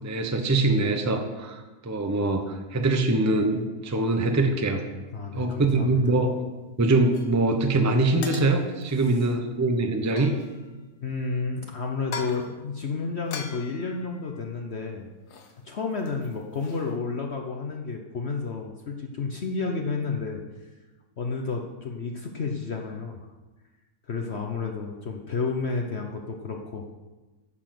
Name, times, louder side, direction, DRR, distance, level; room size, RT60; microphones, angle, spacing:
voice 1, 0.0-4.8 5.3-6.4 6.8-10.4, right 2 dB, 15° right, 5 dB, 0.6 m, -23 dB
voice 2, 5.1-6.2 8.9-9.1 11.0-15.1 15.6-20.7 21.2-23.3 24.1-26.9, left 4 dB, 50° left, 2 dB, 1.0 m, -31 dB
sound 1, 7.1-7.4 8.2-8.9 10.0-10.7 12.0-12.6 13.3-14.8 15.3-15.6 15.8-16.9, left 5 dB, 85° left, 1.5 m, -41 dB
10.0 x 7.1 x 5.9 m, 1.2 s
omnidirectional pair, 1.7 m